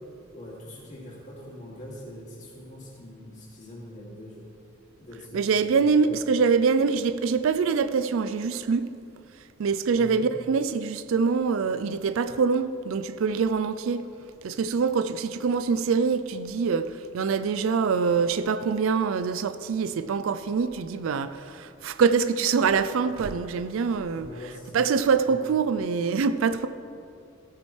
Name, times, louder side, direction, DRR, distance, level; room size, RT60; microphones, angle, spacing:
voice 1, 0.3-4.5 5.0-6.2 7.3-7.4 9.9-10.3 24.1-24.8 25.3-25.4, left 1 dB, 35° left, 2.5 m, -43 dB
voice 2, 5.3-8.9 9.6-14.1 14.4-26.7, right 5 dB, 70° right, 0.4 m, -24 dB
13.5 x 8.6 x 3.2 m
head